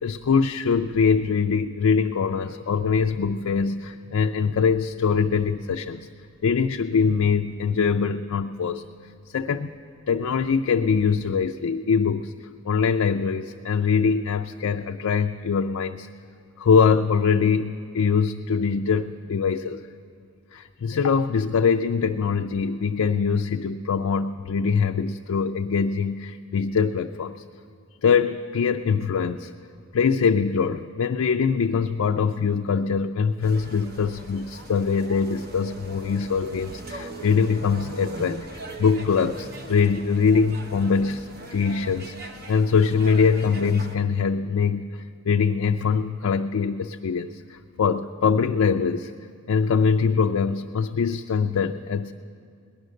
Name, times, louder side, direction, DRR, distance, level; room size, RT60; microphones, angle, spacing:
voice 1, 0.0-6.1 6.4-8.8 9.3-9.8 10.1-12.3 12.6-16.1 16.6-19.8 20.5-27.4 28.0-29.5 29.9-44.8 45.3-49.1 49.5-52.1, left 5 dB, 80° left, 5 dB, 0.4 m, -23 dB
sound 1, 33.4-44.0, right 2 dB, 45° right, 1.0 m, -40 dB
19.0 x 11.0 x 6.4 m, 2.3 s
head